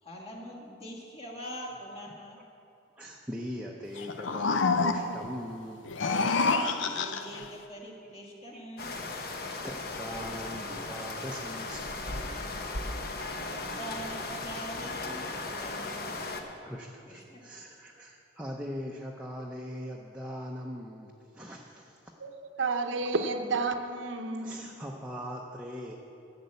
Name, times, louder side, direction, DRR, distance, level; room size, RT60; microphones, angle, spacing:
voice 1, 0.0-2.4 6.7-8.9 13.5-16.1 17.1-17.4, equal, 30° left, -3 dB, 1.8 m, -43 dB
voice 2, 3.0-5.8 8.5-8.6 9.4-12.6 15.0-15.1 15.4-15.6 16.7-22.0 24.4-25.9, equal, 5° right, -2 dB, 0.6 m, -41 dB
sound 1, 4.0-5.3 5.8-7.5, left 4 dB, 75° left, 0.6 m, -28 dB
sound 2, 8.8-16.4, left 2 dB, 50° left, 0.9 m, -37 dB
voice 3, 22.6-24.7, right 3 dB, 70° right, 6 dB, 0.8 m, -31 dB
12.0 x 6.8 x 8.1 m, 2.7 s
head